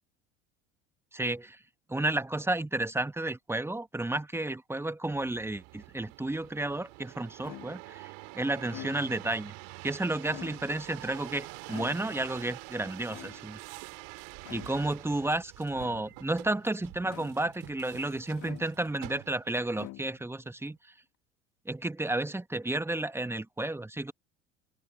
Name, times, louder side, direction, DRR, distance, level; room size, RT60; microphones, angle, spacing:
voice 1, 1.1-1.6 1.9-9.5 9.8-13.6 14.5-20.8 21.6-24.1, right 2 dB, 5° right, 1.4 m, -32 dB
sound 1, 5.1-19.7 20.2-20.8, right 32 dB, 55° right, 2.4 m, -47 dB
sound 2, 7.4-8.0 8.6-9.3 10.1-10.9 11.7-12.4 13.1-13.7 14.4-15.0 15.7-16.3 17.1-17.7 18.4-19.1 19.7-20.4, left 19 dB, 50° left, 1.9 m, -47 dB
figure-of-eight pair, 70°, 38 cm